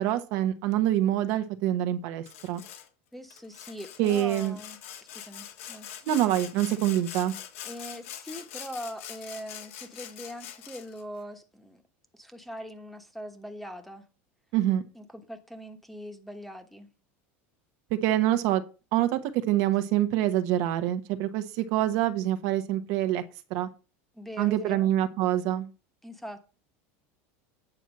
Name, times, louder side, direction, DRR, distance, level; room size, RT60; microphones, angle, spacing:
voice 1, 0.0-2.6 4.0-4.5 6.1-7.3 14.5-14.8 18.0-18.6 18.9-19.2 19.5-23.2 23.5-23.7 24.4-25.7, right 13 dB, 55° right, 1.0 m, -25 dB
Sawing, 2.3-2.9 3.3-11.0, left 10 dB, 85° left, 1.8 m, -43 dB
voice 2, 3.1-4.8 5.1-5.9 7.6-11.8 12.1-14.0 14.9-16.9 24.1-24.9 26.0-26.4, equal, ahead, 1.2 m, -41 dB
9.0 x 4.5 x 7.5 m
supercardioid pair, 155°, 7 cm